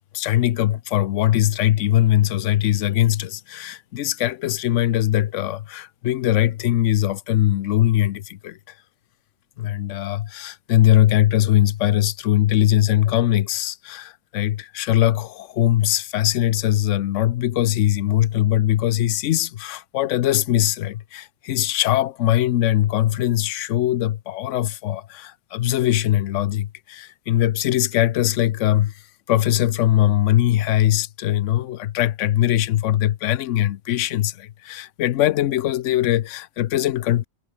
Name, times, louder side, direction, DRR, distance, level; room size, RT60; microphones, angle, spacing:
voice 1, 0.1-8.6 9.6-28.9 29.3-37.3, left 13 dB, 65° left, 0.9 m, -21 dB
omnidirectional pair, 1.4 m